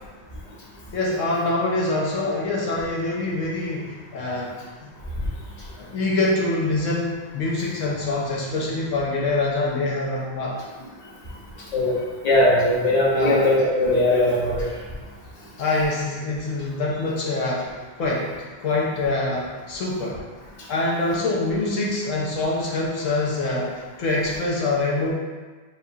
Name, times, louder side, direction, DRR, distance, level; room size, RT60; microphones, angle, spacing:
voice 1, 0.9-4.5 4.8-4.9 5.8-10.6 13.1-13.4 15.6-17.6 18.0-18.3 18.6-20.2 20.7-23.7 24.0-25.1, left 2 dB, 75° left, -3 dB, 1.0 m, -25 dB
voice 2, 12.2-14.7, left 1 dB, 35° left, -6 dB, 0.9 m, -19 dB
7.0 x 2.4 x 2.7 m, 1.4 s
omnidirectional pair, 1.3 m